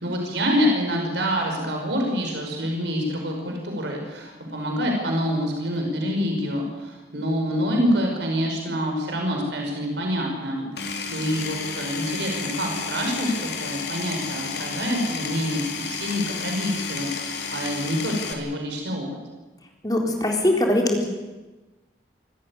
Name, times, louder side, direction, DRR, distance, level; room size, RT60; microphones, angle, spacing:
voice 1, 0.0-19.2, equal, 85° right, 1 dB, 5.3 m, -26 dB
Power tool, 10.8-18.3, left 5 dB, 75° left, 3.2 m, -32 dB
voice 2, 19.8-21.0, left 1 dB, 20° left, 1 dB, 4.0 m, -21 dB
25.5 x 14.5 x 9.8 m, 1.2 s
head